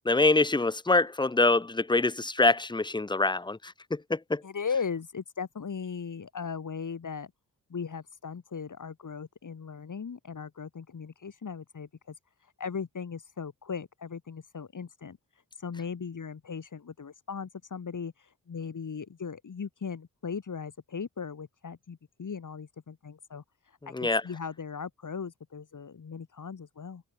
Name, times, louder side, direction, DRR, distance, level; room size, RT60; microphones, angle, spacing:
voice 1, 0.0-4.4 23.9-24.2, left 3 dB, 15° left, 0.8 m, -25 dB
voice 2, 4.4-7.3 7.7-12.2 12.4-15.2 15.5-27.0, left 6 dB, 60° left, 5.7 m, -38 dB
wide cardioid pair, 105°, 34 cm